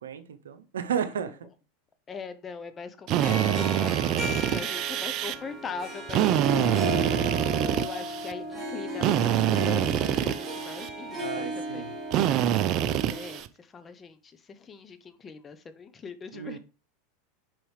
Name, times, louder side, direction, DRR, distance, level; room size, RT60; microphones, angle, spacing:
voice 1, 0.0-1.4 6.2-6.5 11.2-11.9 16.3-16.6, right 8 dB, 90° right, 9 dB, 0.7 m, -33 dB
voice 2, 2.1-12.0 13.1-16.6, left 5 dB, 25° left, 11 dB, 0.8 m, -41 dB
Harp, 3.1-13.4, right 1 dB, 10° right, 2.7 m, -35 dB
Drill, 3.1-5.3 6.1-8.3 9.0-10.9 12.1-13.5, right 11 dB, 50° right, 0.5 m, -26 dB
6.1 x 4.8 x 3.3 m, 0.36 s
hypercardioid pair, 100°, 0 cm